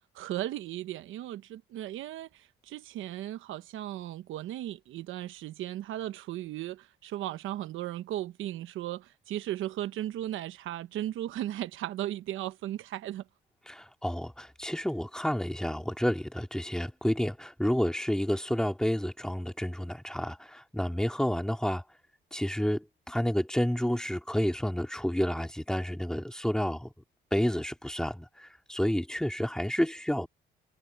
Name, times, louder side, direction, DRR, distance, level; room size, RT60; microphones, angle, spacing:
voice 1, 0.1-13.2, right 13 dB, 85° right, 1.0 m, -36 dB
voice 2, 13.7-21.8 22.3-26.9 27.3-30.3, equal, 5° left, 3.0 m, -30 dB
cardioid pair, 90°, 20 cm